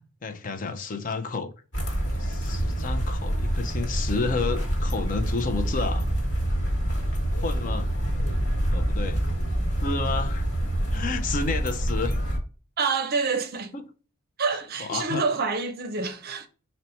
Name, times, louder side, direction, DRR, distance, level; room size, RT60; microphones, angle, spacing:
voice 1, 0.0-1.5 2.2-6.1 7.3-7.9 8.7-9.2 9.8-10.5 10.9-12.2 13.7-13.8 14.8-15.3, left 4 dB, 35° left, 0.4 m, -31 dB
sound 1, 1.7-12.4, right 1 dB, 55° left, 1.3 m, -26 dB
voice 2, 12.8-13.7 14.4-16.5, right 4 dB, 45° right, 0.5 m, -27 dB
4.0 x 2.1 x 4.1 m
head